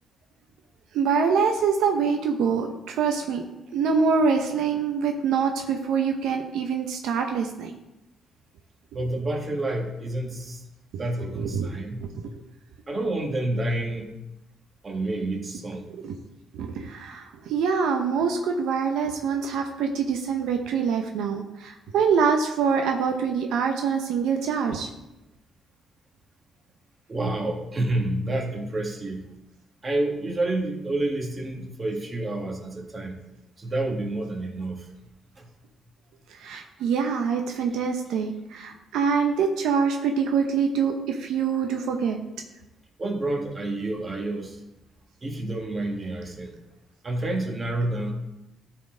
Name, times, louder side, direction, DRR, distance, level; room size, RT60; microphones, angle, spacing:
voice 1, 0.9-3.4 3.7-7.7 11.4-11.7 16.0-16.1 16.5-24.9 36.4-42.2, right 6 dB, 85° right, 4 dB, 0.7 m, -25 dB
voice 2, 8.9-10.6 11.0-12.0 12.9-14.1 14.8-15.9 27.1-29.3 29.8-33.2 33.6-34.9 35.4-35.5 43.0-44.6 45.2-46.5 47.0-48.1, right 2 dB, 30° right, 1 dB, 1.7 m, -29 dB
12.5 x 4.3 x 3.8 m, 0.96 s
cardioid pair, 90°, 0 cm